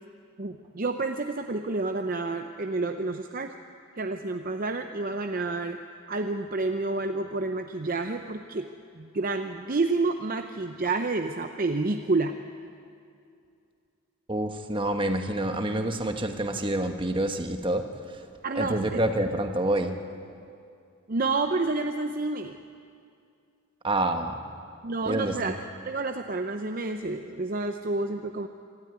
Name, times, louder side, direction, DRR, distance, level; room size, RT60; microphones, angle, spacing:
voice 1, 0.4-3.5 4.0-5.8 6.1-8.7 8.9-12.4 18.4-19.0 21.1-22.6 24.8-25.6 25.8-28.5, right 3 dB, 40° right, 5 dB, 0.6 m, -29 dB
voice 2, 14.3-18.2 18.6-20.0 23.8-24.4 25.1-25.6, right 1 dB, 20° right, 5 dB, 1.2 m, -27 dB
25.0 x 13.0 x 9.4 m, 2.4 s
head